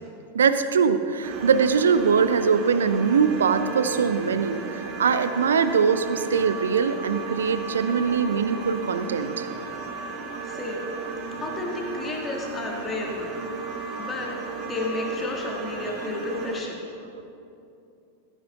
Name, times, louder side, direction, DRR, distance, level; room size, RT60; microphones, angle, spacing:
voice 1, 0.3-4.6 5.0-9.5, right 6 dB, 65° right, 11 dB, 0.5 m, -22 dB
sound 1, 1.2-16.6, right 4 dB, 35° right, 1.0 m, -35 dB
voice 2, 10.4-10.8 11.4-13.3 14.0-14.3 14.6-16.8, left 2 dB, 20° left, -1 dB, 1.7 m, -31 dB
14.5 x 10.0 x 2.6 m, 2.8 s
figure-of-eight pair, 90°, 0 cm